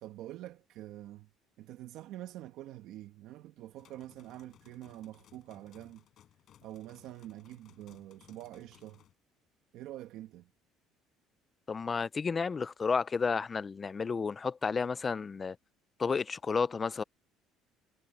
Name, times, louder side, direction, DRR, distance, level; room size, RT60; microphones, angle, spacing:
voice 1, 0.0-1.3 1.6-6.0 6.6-9.0 9.7-10.5, right 14 dB, 65° right, 1.3 m, -46 dB
sound 1, 3.8-9.1, left 10 dB, 50° left, 5.1 m, -62 dB
voice 2, 11.7-15.6 16.0-17.0, left 5 dB, 25° left, 0.3 m, -31 dB
cardioid pair, 140°, 0 cm